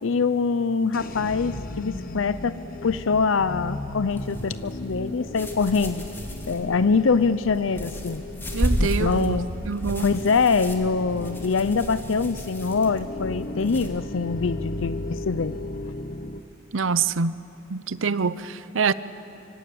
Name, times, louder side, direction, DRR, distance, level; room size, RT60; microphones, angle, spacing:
voice 1, 0.0-2.5 2.8-6.0 6.5-8.2 8.8-9.5 10.0-15.5, left 4 dB, 80° left, 13 dB, 0.6 m, -24 dB
sound 1, 0.9-16.4, left 2 dB, 45° left, 0.9 m, -36 dB
sound 2, 4.1-13.9, equal, 10° left, 2.6 m, -33 dB
voice 2, 8.5-9.4 9.6-10.0 16.7-17.3 17.7-18.9, right 5 dB, 80° right, 15 dB, 0.7 m, -25 dB
25.0 x 24.5 x 8.6 m, 2.9 s
head